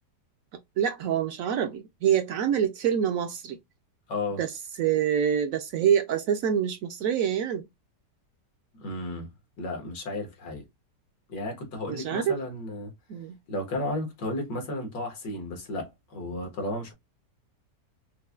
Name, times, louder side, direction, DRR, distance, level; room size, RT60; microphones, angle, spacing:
voice 1, 0.8-3.6 4.4-4.5 4.8-7.6 11.9-12.4 13.1-13.4, right 8 dB, 70° right, 0.8 m, -26 dB
voice 2, 4.1-4.4 8.7-9.3 9.6-10.6 11.3-12.9 13.5-16.9, left 2 dB, 85° left, 2.0 m, -33 dB
5.4 x 2.2 x 2.3 m
omnidirectional pair, 1.9 m